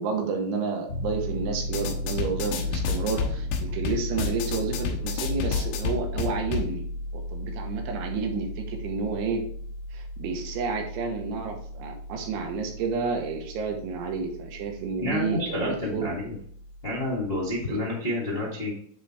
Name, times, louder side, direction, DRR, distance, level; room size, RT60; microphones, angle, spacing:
voice 1, 0.0-6.8 7.1-9.4 9.9-16.1 17.7-17.8, right 5 dB, 75° right, 3 dB, 3.2 m, -30 dB
Piano, 0.9-17.6, left 1 dB, 60° left, 1.5 m, -35 dB
sound 1, 1.7-6.7, left 7 dB, 85° left, 2.4 m, -31 dB
voice 2, 15.0-16.3 16.8-18.7, left 1 dB, 25° left, -5 dB, 1.2 m, -29 dB
10.5 x 3.9 x 3.4 m, 0.62 s
omnidirectional pair, 5.9 m